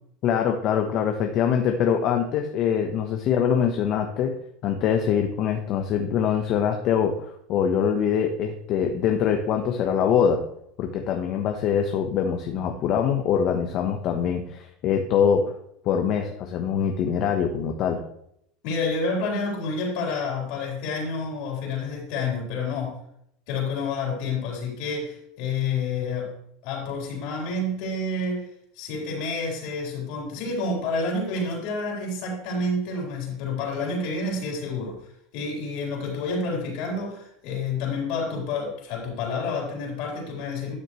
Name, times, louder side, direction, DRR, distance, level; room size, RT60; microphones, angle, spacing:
voice 1, 0.2-4.3 4.6-10.4 10.8-15.5 15.8-18.0, left 8 dB, 50° left, 4 dB, 1.1 m, -24 dB
voice 2, 18.6-23.0 23.5-26.3 26.6-28.5 28.7-35.1 35.3-40.8, left 3 dB, 65° left, -2 dB, 4.1 m, -29 dB
12.0 x 6.4 x 3.2 m, 0.73 s
supercardioid pair, 125°, 0 cm